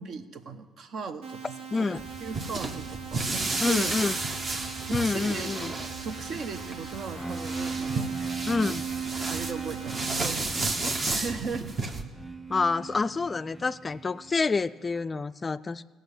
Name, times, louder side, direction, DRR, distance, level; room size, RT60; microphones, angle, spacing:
voice 1, 0.0-1.4 1.8-1.9 2.2-3.9 4.8-5.5 6.0-8.1 9.3-11.8, right 5 dB, 60° right, 9 dB, 0.9 m, -37 dB
sound 1, 1.2-10.2, right 7 dB, 90° right, 1.0 m, -42 dB
voice 2, 1.7-2.0 3.6-4.1 4.9-5.7 8.5-8.9 12.5-15.9, left 4 dB, 25° left, 15 dB, 0.3 m, -28 dB
sound 2, 2.0-12.0, right 3 dB, 40° right, 1.1 m, -32 dB
sound 3, 7.1-14.9, right 5 dB, 15° right, 1.0 m, -38 dB
16.5 x 6.2 x 8.2 m, 1.3 s
cardioid pair, 100°, 0 cm